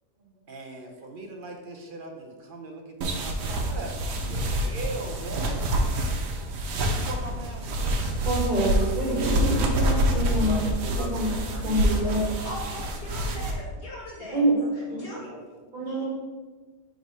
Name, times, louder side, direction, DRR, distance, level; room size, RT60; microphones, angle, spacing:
voice 1, 0.2-5.7 6.8-8.5 10.3-12.5 14.6-15.6 15.9-16.1, right 2 dB, 55° right, 1 dB, 0.5 m, -40 dB
sound 1, 3.0-13.5, right 1 dB, 85° right, 1.4 m, -27 dB
voice 2, 8.2-10.6 11.0-11.3 11.6-12.2 14.3-14.5 15.7-16.1, right 1 dB, 35° right, -5 dB, 1.5 m, -26 dB
voice 3, 12.4-14.4 14.7-15.3, left 1 dB, 60° left, -5 dB, 1.7 m, -39 dB
4.7 x 3.8 x 5.3 m, 1.4 s
omnidirectional pair, 1.7 m